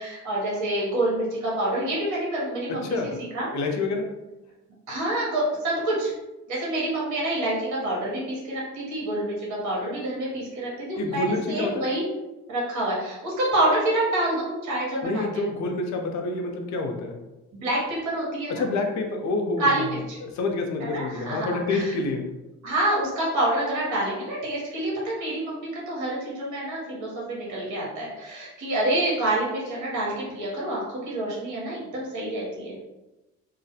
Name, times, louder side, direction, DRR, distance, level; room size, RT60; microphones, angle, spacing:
voice 1, 0.0-3.5 4.9-6.1 6.5-12.0 12.5-15.5 17.5-18.6 19.6-20.2 20.8-22.0 22.6-32.9, right 1 dB, 75° right, -4 dB, 1.0 m, -27 dB
voice 2, 2.7-3.2 3.5-4.2 11.0-11.9 15.0-17.2 18.5-19.9 20.2-22.3, left 3 dB, 65° left, 3 dB, 0.5 m, -28 dB
2.3 x 2.1 x 2.7 m, 1.0 s
cardioid pair, 90°, 30 cm